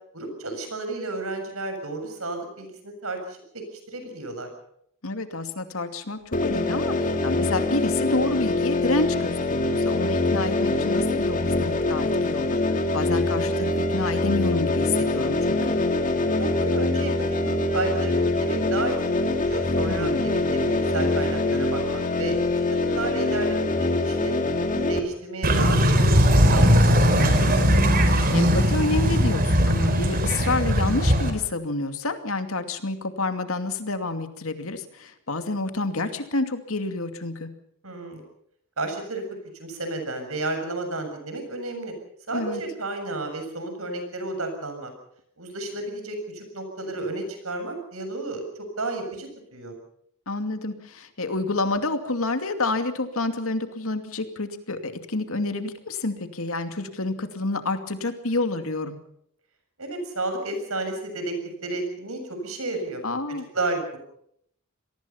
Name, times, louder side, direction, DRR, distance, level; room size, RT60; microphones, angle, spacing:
voice 1, 0.1-4.5 16.3-22.4 22.7-24.4 24.7-26.9 37.8-38.2 38.8-39.2 39.6-41.9 42.3-44.9 45.4-48.4 48.8-49.8 59.8-61.4 61.6-63.0 63.3-64.0, right 2 dB, 75° right, 6 dB, 7.2 m, -32 dB
voice 2, 5.0-15.6 19.9-20.3 27.4-37.5 42.3-42.6 50.3-59.0 63.0-63.5, left 2 dB, 70° left, 7 dB, 2.5 m, -29 dB
sound 1, 6.3-25.0, left 2 dB, 35° left, 2.5 m, -24 dB
sound 2, 25.4-31.3, equal, 45° right, 3.8 m, -19 dB
26.5 x 19.5 x 5.7 m, 0.71 s
head